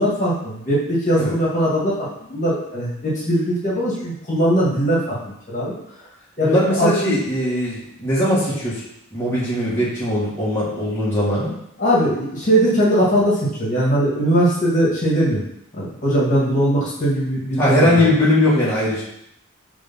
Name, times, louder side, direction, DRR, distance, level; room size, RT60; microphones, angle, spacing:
voice 1, 0.0-5.8 6.4-6.9 11.8-15.4 15.7-18.1, equal, 35° left, -6 dB, 1.8 m, -20 dB
voice 2, 6.4-8.8 9.1-11.5 17.6-19.0, left 1 dB, 10° left, -9 dB, 1.7 m, -20 dB
6.5 x 3.4 x 5.5 m, 0.78 s
head